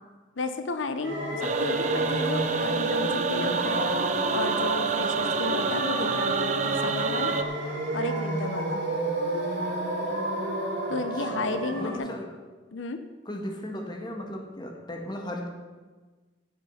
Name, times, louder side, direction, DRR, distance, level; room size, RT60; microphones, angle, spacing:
voice 1, 0.4-3.8 4.3-7.3 7.9-8.8 10.9-12.1 12.7-13.0, left 3 dB, 85° left, 9 dB, 0.8 m, -33 dB
sound 1, 1.0-12.0, right 1 dB, 65° right, 3.9 m, -30 dB
sound 2, 1.4-7.4, right 5 dB, 40° right, 0.6 m, -28 dB
voice 2, 10.9-12.3 13.2-15.5, left 1 dB, 25° left, 2 dB, 1.6 m, -37 dB
15.0 x 7.5 x 5.7 m, 1.4 s
head